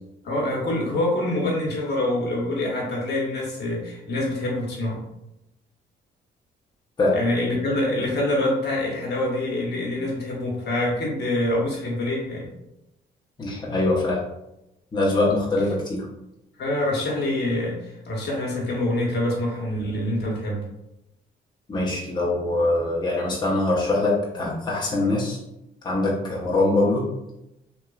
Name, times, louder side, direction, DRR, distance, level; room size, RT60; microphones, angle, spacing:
voice 1, 0.2-5.0 7.1-12.5 16.6-20.7, left 1 dB, 55° left, -3 dB, 1.0 m, -25 dB
voice 2, 13.4-14.2 14.9-16.1 21.7-25.4 25.8-27.1, left 2 dB, 20° left, -5 dB, 0.7 m, -23 dB
3.0 x 2.3 x 2.3 m, 0.88 s
cardioid pair, 90°, 20 cm